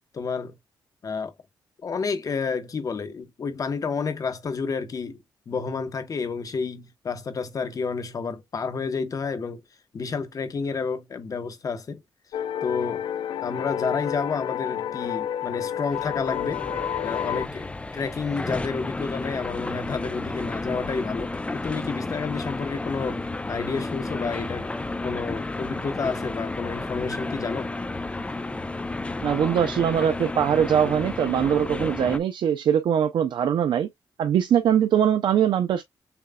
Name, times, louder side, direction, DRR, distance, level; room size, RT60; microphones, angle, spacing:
voice 1, 0.1-0.5 1.0-1.3 1.8-5.2 5.5-9.6 9.9-12.0 12.6-13.0 13.4-16.7 17.0-24.7 25.0-27.7, left 5 dB, 45° left, 0.9 m, -30 dB
sound 1, 12.3-17.5, left 10 dB, 90° left, 0.3 m, -30 dB
sound 2, 15.9-32.2, left 2 dB, 15° left, 0.5 m, -32 dB
voice 2, 29.2-33.9 34.2-35.8, right 9 dB, 75° right, 0.5 m, -22 dB
6.9 x 2.4 x 2.2 m
cardioid pair, 95°, 8 cm